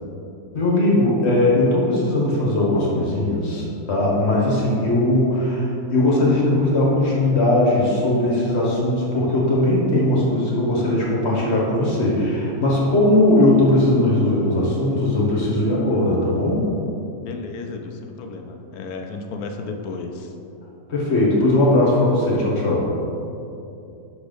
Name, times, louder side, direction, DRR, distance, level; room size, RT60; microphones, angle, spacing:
voice 1, 0.5-16.6 20.9-22.9, left 1 dB, 40° left, -4 dB, 1.3 m, -19 dB
voice 2, 17.3-20.3, left 4 dB, 70° left, 4 dB, 0.9 m, -33 dB
6.0 x 3.9 x 5.1 m, 2.7 s
omnidirectional pair, 1.9 m